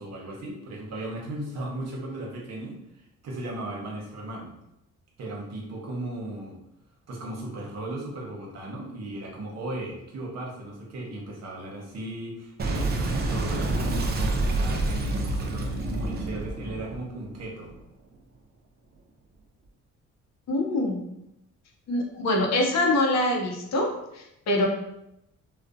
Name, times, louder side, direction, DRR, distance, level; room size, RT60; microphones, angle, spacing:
voice 1, 0.0-2.7 3.2-4.5 5.2-6.5 7.1-17.7, right 1 dB, 60° right, -2 dB, 0.8 m, -36 dB
Boom, 12.6-17.8, right 2 dB, 35° right, 0.4 m, -28 dB
voice 2, 20.5-21.0 21.9-24.6, left 1 dB, 60° left, 0 dB, 0.6 m, -24 dB
2.5 x 2.0 x 2.5 m, 0.85 s
cardioid pair, 90°, 30 cm